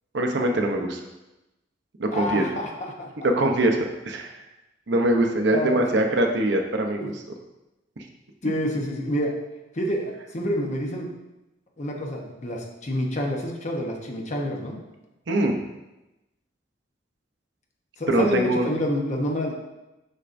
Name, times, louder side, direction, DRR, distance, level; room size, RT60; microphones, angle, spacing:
voice 1, 0.1-1.0 2.0-2.5 3.2-4.3 4.9-7.1 15.3-15.6 18.1-18.7, right 1 dB, 65° right, 3 dB, 0.7 m, -23 dB
voice 2, 2.1-3.3 5.5-6.0 7.0-7.1 8.4-9.3 9.7-11.1 11.8-14.8 18.0-19.5, equal, 40° left, 1 dB, 0.9 m, -28 dB
6.5 x 5.8 x 2.6 m, 0.98 s
head